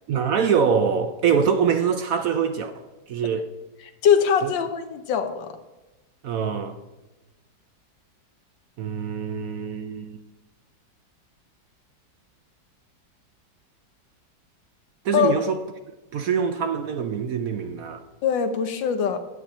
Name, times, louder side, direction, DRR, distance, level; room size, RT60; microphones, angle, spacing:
voice 1, 0.1-3.5 4.4-4.5 6.2-6.8 8.8-10.2 15.0-15.6 16.1-18.0, right 6 dB, 65° right, 0.9 m, -24 dB
voice 2, 4.0-5.5 15.1-15.3 18.2-19.2, left 7 dB, 85° left, 1.6 m, -22 dB
9.8 x 9.4 x 4.3 m
omnidirectional pair, 2.0 m